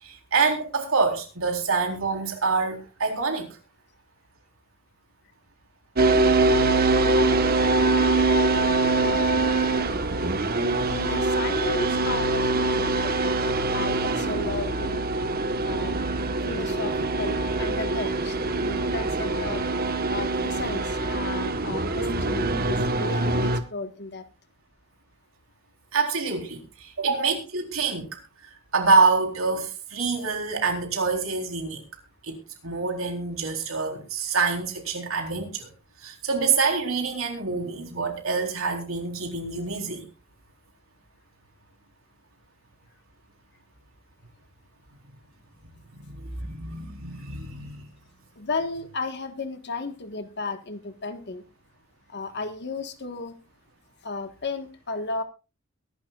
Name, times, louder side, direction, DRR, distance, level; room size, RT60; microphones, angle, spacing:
voice 1, 0.0-3.5 25.9-28.1 28.7-31.8 32.2-32.4 32.6-35.7 36.0-40.1 46.1-47.8, right 4 dB, 80° right, 3 dB, 4.0 m, -26 dB
sound 1, 6.0-23.6, right 2 dB, 50° right, 1.3 m, -24 dB
voice 2, 10.7-13.3 13.7-15.0 15.6-16.0 16.5-19.6 20.1-24.2 48.4-51.4 52.1-53.4 54.0-55.2, left 3 dB, 55° left, 9 dB, 1.6 m, -34 dB
23.0 x 11.5 x 2.5 m, 0.30 s
head